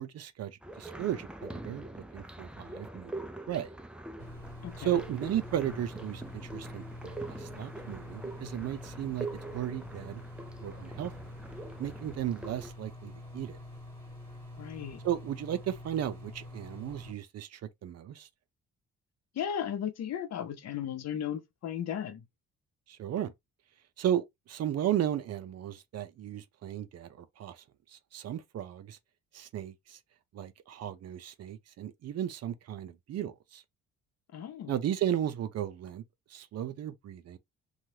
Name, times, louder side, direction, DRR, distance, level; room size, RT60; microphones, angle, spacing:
voice 1, 0.0-3.7 4.8-10.2 10.6-11.1 11.8-13.6 15.0-18.3 22.9-23.3 24.0-27.6 27.9-29.0 29.3-30.0 30.3-33.6 34.7-36.0 36.3-37.4, right 11 dB, 55° right, 0.5 m, -35 dB
sound 1, 0.6-12.7, right 2 dB, 5° right, 0.4 m, -44 dB
sound 2, 4.2-17.1, left 1 dB, 15° left, 1.8 m, -46 dB
voice 2, 4.6-5.0 14.6-15.0 19.4-22.2 34.3-34.7, left 9 dB, 60° left, 0.7 m, -35 dB
3.1 x 2.3 x 2.7 m
cardioid pair, 90°, 30 cm